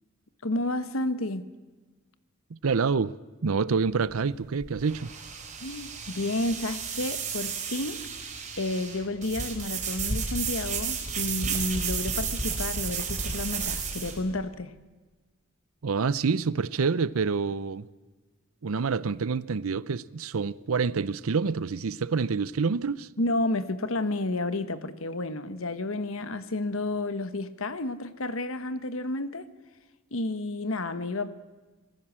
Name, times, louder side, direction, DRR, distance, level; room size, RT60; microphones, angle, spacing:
voice 1, 0.4-1.4 5.6-8.0 8.6-14.7 23.2-29.4 30.1-31.3, left 2 dB, 70° left, 1.3 m, -31 dB
voice 2, 2.6-3.1 3.4-5.1 15.8-17.9 18.6-23.1, right 5 dB, 80° right, 0.6 m, -27 dB
sound 1, 3.8-14.2, right 5 dB, 35° right, 4.4 m, -32 dB
25.5 x 19.0 x 7.5 m
head